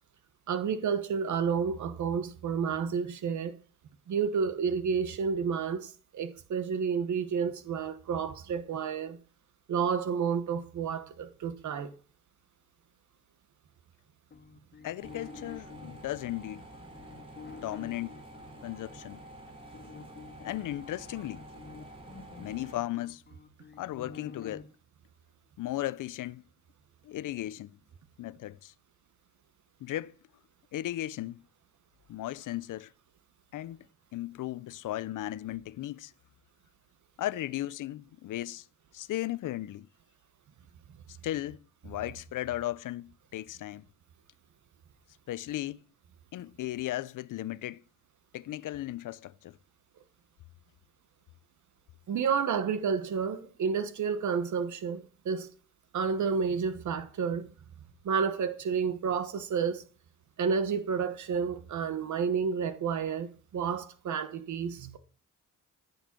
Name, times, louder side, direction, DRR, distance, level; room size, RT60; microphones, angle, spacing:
voice 1, 0.5-3.6 4.1-9.2 9.7-11.9 52.1-55.5 55.9-57.5 58.0-59.8 60.4-65.0, right 6 dB, 60° right, 1.3 m, -30 dB
sound 1, 14.3-19.0 19.7-24.6, left 5 dB, 30° left, 1.8 m, -49 dB
voice 2, 14.8-16.6 17.6-18.2 18.6-19.2 20.4-21.4 22.4-23.2 23.8-24.7 25.6-26.4 27.0-27.7 28.2-28.7 29.8-30.1 30.7-31.4 32.1-32.9 33.5-33.8 34.1-36.1 37.2-38.7 38.9-39.9 41.2-43.8 45.3-45.8 46.3-47.8 48.3-49.6, left 14 dB, 70° left, 0.6 m, -36 dB
sound 2, 15.0-22.8, right 1 dB, 15° right, 5.6 m, -49 dB
14.0 x 7.1 x 6.0 m
cardioid pair, 150°, 33 cm